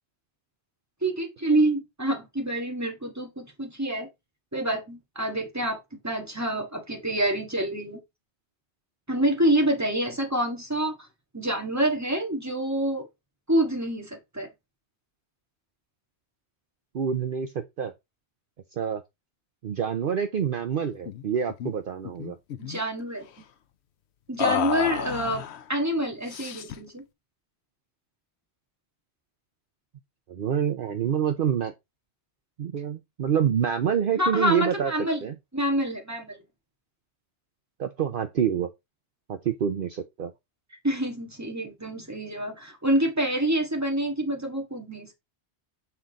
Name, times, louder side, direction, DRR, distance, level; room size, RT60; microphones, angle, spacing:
voice 1, 1.0-4.1 4.5-8.0 9.1-10.9 11.3-13.1 13.5-14.5 22.6-23.3 24.3-25.4 25.7-27.0 34.2-35.2 35.5-36.4 40.8-45.1, right 1 dB, 15° right, 1.6 m, -27 dB
voice 2, 16.9-17.9 18.8-19.0 19.6-22.4 30.3-31.7 32.6-34.9 35.2-35.4 37.8-38.7 39.3-40.3, right 8 dB, 55° right, 0.8 m, -27 dB
sound 1, 21.1-21.2 21.5-21.7 22.0-22.8 24.4-25.6 26.3-26.9, left 10 dB, 75° left, 0.9 m, -31 dB
6.9 x 3.8 x 4.0 m
omnidirectional pair, 1.1 m